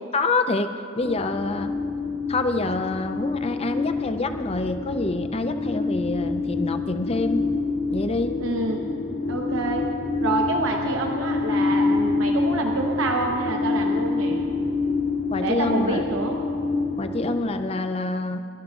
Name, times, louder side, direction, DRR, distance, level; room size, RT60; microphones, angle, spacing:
voice 1, 0.1-1.7 2.3-7.4 7.9-8.4 15.3-16.0 17.0-18.4, left 2 dB, 30° left, 8 dB, 0.5 m, -26 dB
sound 1, 1.0-17.5, left 3 dB, 75° left, 2.8 m, -27 dB
voice 2, 8.4-8.9 9.3-9.9 10.2-14.4 15.4-16.4, right 2 dB, 75° right, 1 dB, 0.9 m, -27 dB
22.0 x 12.5 x 2.5 m, 2.6 s
head